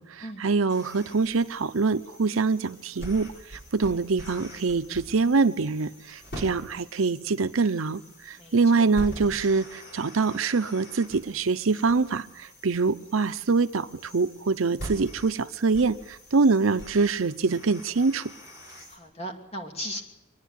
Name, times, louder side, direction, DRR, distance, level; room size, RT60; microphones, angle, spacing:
voice 1, 0.0-3.3 3.7-18.3, right 4 dB, 90° right, 0.7 m, -24 dB
sound 1, 0.7-19.0, equal, 55° left, 6.1 m, -44 dB
voice 2, 8.4-8.9 18.9-20.0, equal, 30° left, 2.6 m, -37 dB
25.0 x 10.5 x 10.0 m
head